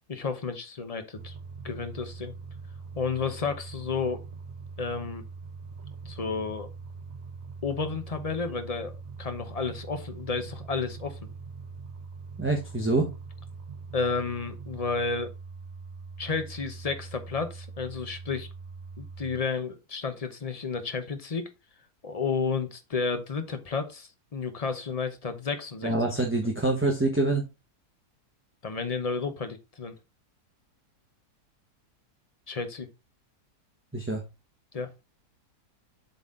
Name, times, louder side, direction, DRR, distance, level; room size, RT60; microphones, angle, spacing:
voice 1, 0.1-1.3 1.6-2.3 2.9-4.2 4.8-5.2 6.0-6.7 7.6-8.9 9.2-11.2 13.9-15.3 16.2-18.5 19.0-21.5 22.0-25.9 28.6-30.0 32.5-32.9 34.7-34.9, left 4 dB, 30° left, 9 dB, 0.7 m, -31 dB
sound 1, 1.1-19.4, right 4 dB, 60° right, 1.3 m, -42 dB
voice 2, 12.4-13.1 25.8-27.5 33.9-34.2, right 2 dB, 10° right, 1 dB, 0.9 m, -25 dB
7.7 x 4.2 x 3.7 m, 0.26 s
omnidirectional pair, 1.7 m